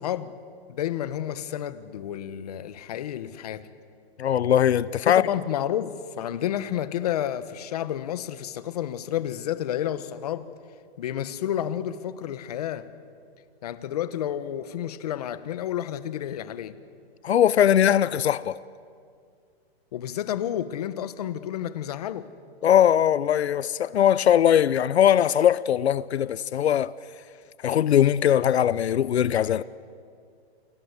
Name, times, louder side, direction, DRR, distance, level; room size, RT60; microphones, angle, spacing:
voice 1, 0.0-0.4 0.7-3.7 5.1-10.5 11.0-12.9 13.6-16.8 19.9-22.3, left 11 dB, 40° left, 1.1 m, -30 dB
voice 2, 4.2-5.3 17.2-18.6 22.6-26.9 27.6-29.6, left 10 dB, 90° left, 0.8 m, -20 dB
29.5 x 21.5 x 8.2 m
hypercardioid pair, 170°, 32 cm